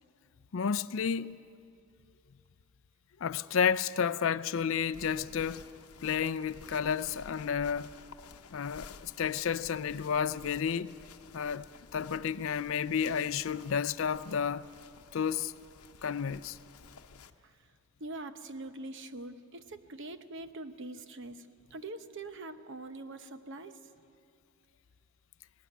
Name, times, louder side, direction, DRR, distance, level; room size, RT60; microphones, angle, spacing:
voice 1, 0.5-1.4 3.2-5.6 6.0-7.9 8.5-10.9 11.3-11.7 11.9-14.7 15.1-15.5 16.0-16.6, left 7 dB, 60° left, 0.4 m, -31 dB
sound 1, 4.9-17.3, left 4 dB, 80° left, 0.8 m, -53 dB
voice 2, 18.0-23.8, right 2 dB, 55° right, 0.9 m, -43 dB
19.0 x 18.5 x 9.3 m
head